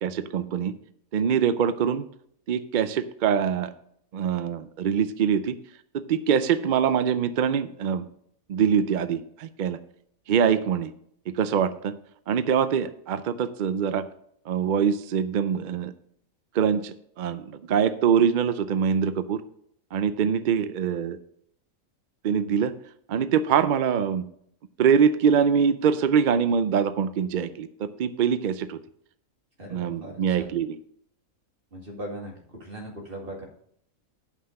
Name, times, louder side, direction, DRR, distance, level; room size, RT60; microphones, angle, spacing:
voice 1, 0.0-0.7 1.1-2.1 2.5-3.7 4.1-5.6 5.9-8.1 8.5-9.8 10.3-10.9 11.3-12.0 12.3-14.1 14.5-15.9 16.5-19.4 19.9-21.2 22.2-22.7 23.1-24.2 24.8-28.8 29.7-30.8, right 7 dB, 70° right, 12 dB, 0.4 m, -24 dB
voice 2, 29.6-30.5 31.7-33.4, equal, 40° right, -1 dB, 2.3 m, -39 dB
8.4 x 5.7 x 6.4 m, 0.67 s
omnidirectional pair, 1.5 m